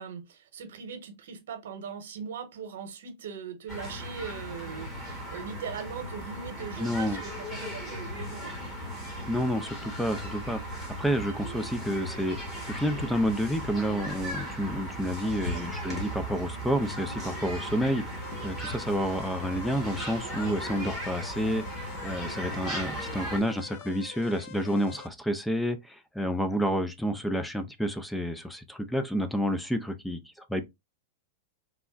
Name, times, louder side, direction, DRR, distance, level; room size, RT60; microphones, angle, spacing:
voice 1, 0.0-8.5 15.3-15.7 22.2-22.3, right 6 dB, 80° right, 0.9 m, -40 dB
sound 1, 3.7-23.4, equal, 20° left, 1.2 m, -37 dB
voice 2, 6.8-7.2 9.3-10.6 10.9-12.4 12.6-30.2 30.5-30.6, equal, 5° left, 0.4 m, -29 dB
sound 2, 18.2-25.1, left 10 dB, 65° left, 0.4 m, -47 dB
3.5 x 2.1 x 2.4 m
hypercardioid pair, 135°, 0 cm